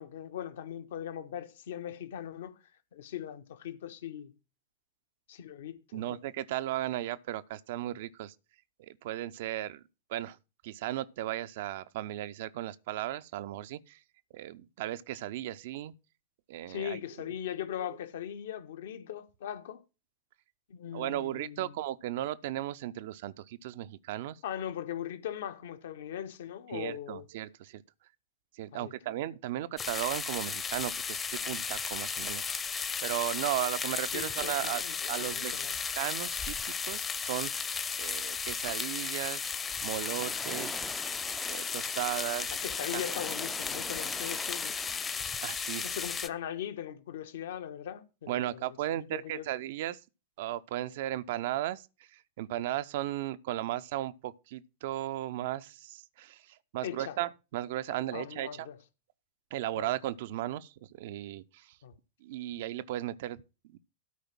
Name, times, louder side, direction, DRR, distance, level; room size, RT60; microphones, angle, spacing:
voice 1, 0.0-2.5 2.9-4.3 5.3-6.2 16.7-19.8 20.7-21.7 24.4-27.3 28.7-28.9 34.1-34.5 34.8-35.7 42.5-44.8 45.8-49.5 56.8-57.2 58.1-58.8 59.8-59.9 61.8-61.9, left 10 dB, 60° left, 1.2 m, -40 dB
voice 2, 5.9-8.3 8.8-9.8 10.1-10.4 10.6-14.0 14.3-15.9 16.5-17.0 20.9-24.4 26.7-27.8 28.5-32.5 33.0-35.6 36.0-36.6 36.8-39.4 39.8-40.8 41.5-42.6 42.9-43.0 44.9-45.0 45.4-45.9 48.3-50.0 50.4-58.7 59.5-61.8 62.2-63.8, right 14 dB, 55° right, 0.6 m, -36 dB
sound 1, 29.8-46.3, left 6 dB, 20° left, 0.9 m, -35 dB
Waves surf, 39.5-46.3, right 1 dB, 5° right, 0.5 m, -46 dB
12.5 x 5.0 x 6.1 m
figure-of-eight pair, 90°, 0 cm